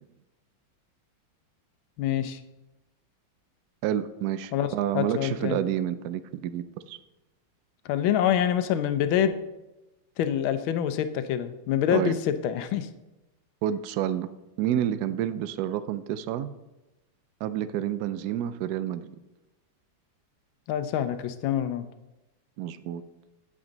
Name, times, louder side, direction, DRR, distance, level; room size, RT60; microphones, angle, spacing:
voice 1, 2.0-2.4 4.5-4.7 4.9-5.6 7.8-9.3 10.2-12.9 20.7-21.9, left 10 dB, 85° left, 10 dB, 1.5 m, -26 dB
voice 2, 3.8-7.0 11.9-12.1 13.6-14.3 14.6-16.5 17.4-19.2 22.6-23.0, right 11 dB, 80° right, 12 dB, 0.8 m, -29 dB
8.7 x 8.4 x 3.9 m, 1.0 s
omnidirectional pair, 2.2 m